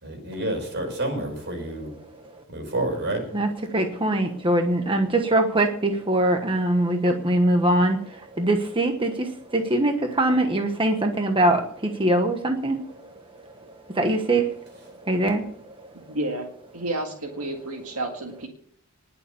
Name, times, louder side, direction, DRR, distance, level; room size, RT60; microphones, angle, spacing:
voice 1, 0.0-1.9 2.5-3.2, right 1 dB, 55° right, 4 dB, 5.5 m, -29 dB
voice 2, 3.3-13.1 13.4-13.5 13.9-15.7, right 1 dB, 25° right, 4 dB, 1.2 m, -23 dB
voice 3, 16.1-16.5 16.7-18.5, right 1 dB, 75° right, 2 dB, 2.0 m, -30 dB
20.0 x 6.9 x 6.9 m, 0.64 s
head